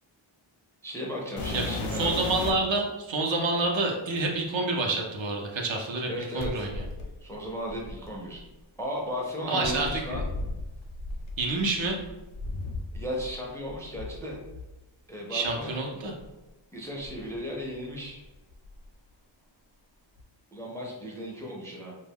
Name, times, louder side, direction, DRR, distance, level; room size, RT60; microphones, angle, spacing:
voice 1, 0.8-2.1 6.1-6.7 7.2-8.4 8.8-10.2 12.9-14.4 15.1-15.7 16.7-18.2 20.5-21.9, equal, 5° left, -2 dB, 0.4 m, -35 dB
sound 1, 1.4-2.8 3.6-3.7 6.4-8.5 9.6-13.3 13.6-14.7 15.4-15.6 16.2-16.3 17.0-18.1 18.3-18.9 20.2-20.3, left 3 dB, 70° left, 0.6 m, -36 dB
voice 2, 2.0-6.7 9.5-10.2 11.4-12.0 15.3-16.1, right 2 dB, 65° right, 1 dB, 0.7 m, -28 dB
2.2 x 2.1 x 3.4 m, 1.1 s
wide cardioid pair, 120°, 48 cm